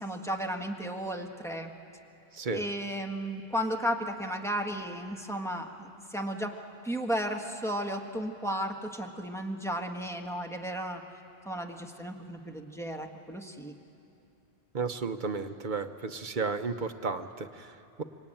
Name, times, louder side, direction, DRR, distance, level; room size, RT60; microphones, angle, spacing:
voice 1, 0.0-1.7 2.5-6.5 6.8-11.0 11.4-13.7, equal, 5° left, 2 dB, 1.5 m, -34 dB
voice 2, 2.3-2.6 14.7-18.0, right 4 dB, 50° right, 8 dB, 1.0 m, -33 dB
26.0 x 23.5 x 9.1 m, 2.7 s
omnidirectional pair, 1.1 m